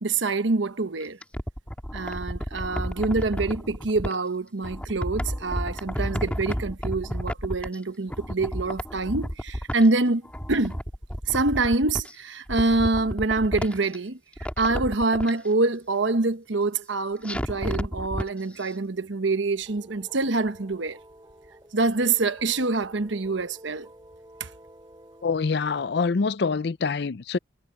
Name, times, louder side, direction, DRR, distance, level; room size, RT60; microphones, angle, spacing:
voice 1, 0.0-1.2 1.9-10.2 10.5-10.8 11.3-14.2 14.6-21.0 21.7-23.9 24.4-24.5, right 3 dB, 75° right, 1.1 m, -25 dB
sound 1, 1.0-4.2 4.6-7.8 8.1-10.0 10.3-12.1 12.5-14.0 14.3-15.3 17.2-18.3 18.6-18.7, equal, 5° left, 2.2 m, -31 dB
sound 2, 19.3-25.5, right 1 dB, 20° right, 7.8 m, -50 dB
voice 2, 25.2-27.4, left 4 dB, 60° left, 0.5 m, -25 dB
head